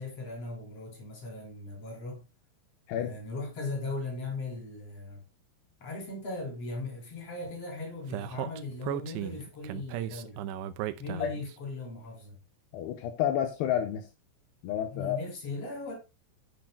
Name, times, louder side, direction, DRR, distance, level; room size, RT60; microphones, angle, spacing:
voice 1, 0.0-2.3 2.9-5.2 5.8-10.4 11.0-12.3 14.9-15.9, left 3 dB, 35° left, 4.4 m, -38 dB
Speech, 8.1-11.5, right 12 dB, 90° right, 2.8 m, -35 dB
voice 2, 12.7-14.1 14.6-15.2, left 10 dB, 80° left, 2.9 m, -30 dB
10.5 x 9.7 x 2.2 m
omnidirectional pair, 4.9 m